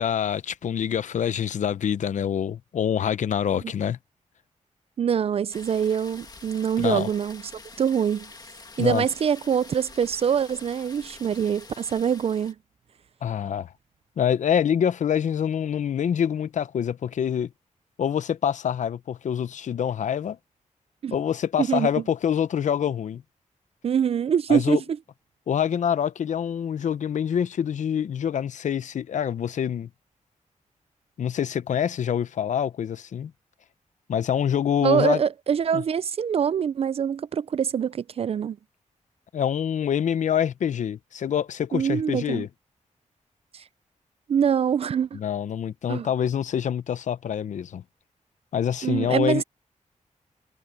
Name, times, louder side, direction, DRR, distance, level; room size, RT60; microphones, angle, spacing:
voice 1, 0.0-4.0 6.8-7.1 8.8-9.0 13.2-13.7 14.2-17.5 18.0-20.4 21.1-23.2 24.5-24.8 25.5-29.9 31.2-33.3 34.1-35.2 35.7-35.8 39.3-42.5 45.1-47.8 48.5-49.4, left 8 dB, 70° left, 0.7 m, -26 dB
voice 2, 5.0-7.4 7.8-8.3 8.8-12.5 21.0-21.2 21.6-21.9 23.8-24.8 34.8-38.6 41.7-42.4 43.5-43.6 44.3-45.2 45.9-46.1 48.8-49.4, right 8 dB, 50° right, 0.4 m, -24 dB
sound 1, 5.5-12.5, left 3 dB, 30° left, 2.0 m, -46 dB
wide cardioid pair, 140°, 13 cm